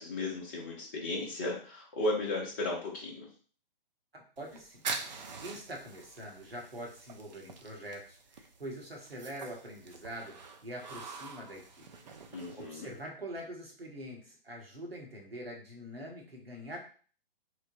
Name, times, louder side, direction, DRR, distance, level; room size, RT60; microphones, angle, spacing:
voice 1, 0.0-3.3 12.3-12.9, left 2 dB, 20° left, -4 dB, 0.4 m, -35 dB
voice 2, 4.1-4.8 5.4-10.3 10.6-11.9 12.6-16.8, right 1 dB, 90° right, -1 dB, 1.1 m, -44 dB
sound 1, 4.4-13.0, right 4 dB, 50° right, 0.5 m, -45 dB
3.1 x 2.1 x 2.6 m, 0.41 s
figure-of-eight pair, 130°, 29 cm